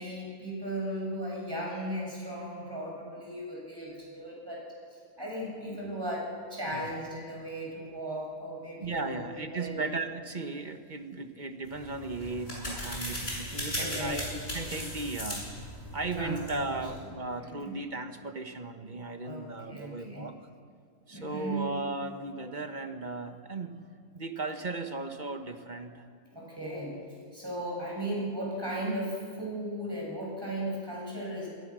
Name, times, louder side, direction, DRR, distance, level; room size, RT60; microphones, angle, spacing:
voice 1, 0.0-4.6 4.9-9.9 13.8-14.2 16.2-16.9 17.4-17.7 19.2-20.2 21.1-21.7 26.3-27.0 27.3-31.5, right 1 dB, 15° right, -4 dB, 8.0 m, -36 dB
voice 2, 8.8-14.3 14.5-15.5 15.9-20.4 21.1-23.8 24.1-26.1, right 3 dB, 35° right, 7 dB, 1.4 m, -36 dB
sound 1, 11.7-17.0, equal, 45° left, 7.8 m, -38 dB
27.0 x 22.0 x 6.3 m, 2.2 s
omnidirectional pair, 1.5 m